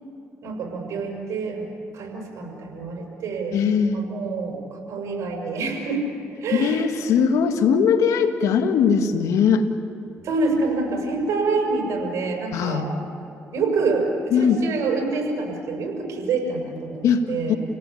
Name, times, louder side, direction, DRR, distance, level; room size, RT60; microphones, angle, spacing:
voice 1, 0.4-1.7 1.9-3.6 3.9-6.8 7.1-7.2 10.2-12.9 13.5-17.0 17.3-17.6, right 3 dB, 70° right, 2 dB, 6.3 m, -26 dB
voice 2, 3.5-4.0 6.5-9.7 12.5-12.9 14.3-14.6 17.0-17.5, left 6 dB, 80° left, 7 dB, 1.9 m, -20 dB
29.0 x 18.0 x 8.6 m, 2.8 s
supercardioid pair, 70°, 5 cm